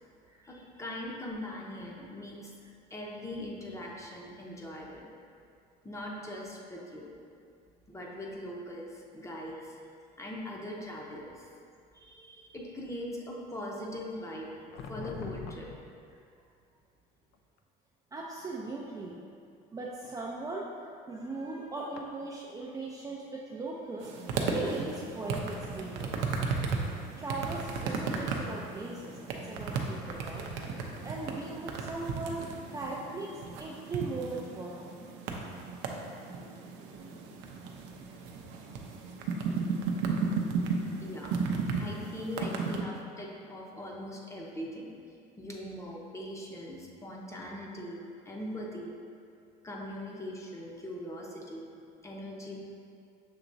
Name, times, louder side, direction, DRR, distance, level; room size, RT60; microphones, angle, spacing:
voice 1, 0.4-2.5 2.9-5.1 5.8-7.1 7.9-9.8 10.2-11.4 12.5-14.5 14.8-15.7 41.0-44.9 45.4-48.9 49.6-51.7 52.0-52.6, left 1 dB, 15° left, -2 dB, 0.8 m, -41 dB
voice 2, 11.9-12.5 18.1-19.2 19.7-20.7 21.1-24.1 24.5-26.2 27.2-30.5 31.0-32.5 32.7-34.9, right 3 dB, 20° right, -3 dB, 0.4 m, -39 dB
sound 1, 14.7-15.8 17.3-17.6 19.5-19.8 22.0-22.1, left 5 dB, 60° left, 0.4 m, -41 dB
sound 2, 24.0-42.8, right 4 dB, 75° right, 0.6 m, -35 dB
6.8 x 2.9 x 2.6 m, 2.3 s
supercardioid pair, 95°, 19 cm